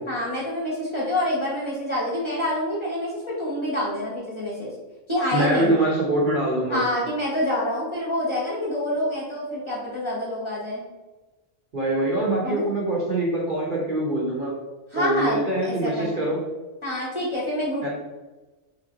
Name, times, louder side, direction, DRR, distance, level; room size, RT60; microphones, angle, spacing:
voice 1, 0.0-4.7 5.1-5.8 6.7-10.8 12.4-12.6 14.9-16.3 16.8-17.9, left 1 dB, 25° left, -6 dB, 1.0 m, -27 dB
voice 2, 5.3-6.8 11.7-14.5 14.9-16.4 17.8-17.9, right 1 dB, 45° right, -3 dB, 1.0 m, -24 dB
3.3 x 3.2 x 3.7 m, 1.2 s
omnidirectional pair, 1.3 m